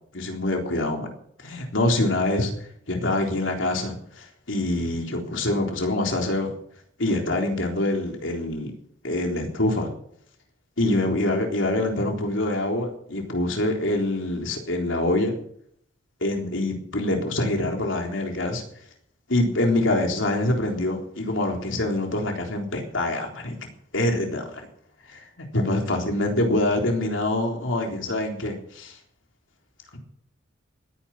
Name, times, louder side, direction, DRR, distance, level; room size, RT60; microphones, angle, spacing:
voice 1, 0.1-1.1 1.4-2.5 2.9-6.5 7.0-8.7 9.0-9.9 10.8-15.3 16.2-18.6 19.3-23.6 23.9-24.5 25.1-28.9 29.9-30.0, left 1 dB, 70° left, 2 dB, 3.8 m, -25 dB
19.5 x 10.0 x 6.0 m, 0.67 s
head